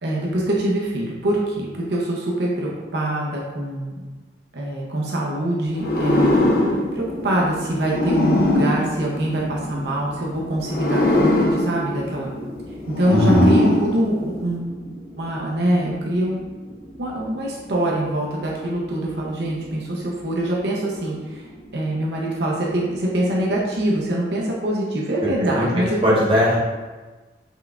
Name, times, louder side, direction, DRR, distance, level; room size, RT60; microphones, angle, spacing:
voice 1, 0.0-4.0 4.5-6.5 6.9-12.3 12.9-14.8 15.2-16.4 17.0-21.5 21.7-26.0, right 1 dB, 70° right, -3 dB, 0.7 m, -24 dB
sound 1, 5.8-9.9 10.6-14.6, left 1 dB, 55° left, 0.6 m, -21 dB
sound 2, 5.8-24.1, equal, 20° left, 1.3 m, -40 dB
voice 2, 13.1-13.5 25.5-25.7 26.0-26.6, equal, 30° right, -6 dB, 0.9 m, -18 dB
5.6 x 3.4 x 2.4 m, 1.3 s
head